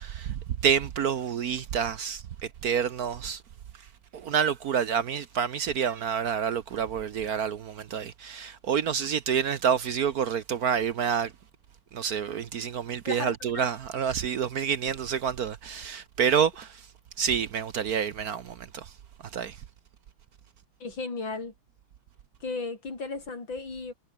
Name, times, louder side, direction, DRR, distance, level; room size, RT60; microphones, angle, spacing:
voice 1, 0.0-3.4 3.8-3.9 4.1-11.3 11.9-16.9 17.2-18.9 19.2-19.6, right 7 dB, 60° right, 1.2 m, -28 dB
voice 2, 13.0-13.7 20.8-21.5 22.4-23.9, left 3 dB, 70° left, 5.0 m, -35 dB
omnidirectional pair, 2.2 m